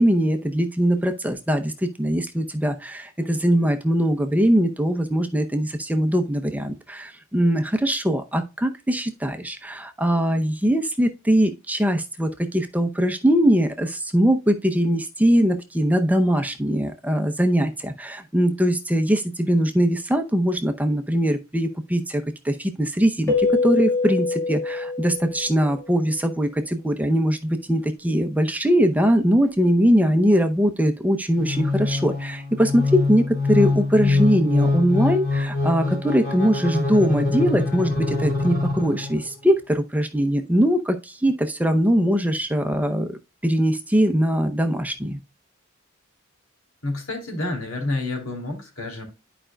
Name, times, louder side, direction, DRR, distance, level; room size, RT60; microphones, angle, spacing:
voice 1, 0.0-45.2, equal, 5° right, 0.7 m, -21 dB
Keyboard (musical), 23.3-25.8, left 4 dB, 15° left, 1.9 m, -24 dB
sound 1, 31.4-39.3, left 3 dB, 45° left, 3.7 m, -24 dB
voice 2, 46.8-49.0, left 2 dB, 75° left, 3.0 m, -29 dB
11.5 x 5.0 x 2.3 m
head